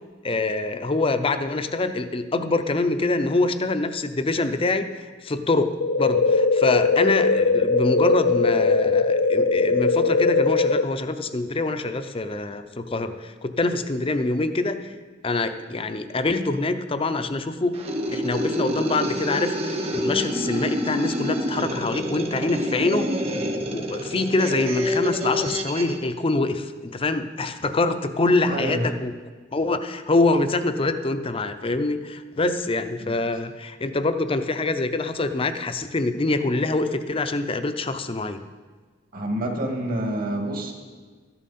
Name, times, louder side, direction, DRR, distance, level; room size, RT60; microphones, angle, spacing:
voice 1, 0.2-14.9 15.2-17.8 18.1-23.2 23.7-29.1 29.5-38.4, left 2 dB, 30° left, 10 dB, 0.6 m, -25 dB
sound 1, 5.8-10.8, left 4 dB, 85° left, 0.5 m, -20 dB
sound 2, 17.7-25.9, equal, 35° right, 1.3 m, -27 dB
voice 2, 28.5-28.9 33.0-33.2 39.1-40.7, right 1 dB, 50° right, 2 dB, 1.9 m, -27 dB
13.0 x 11.0 x 4.3 m, 1.4 s
head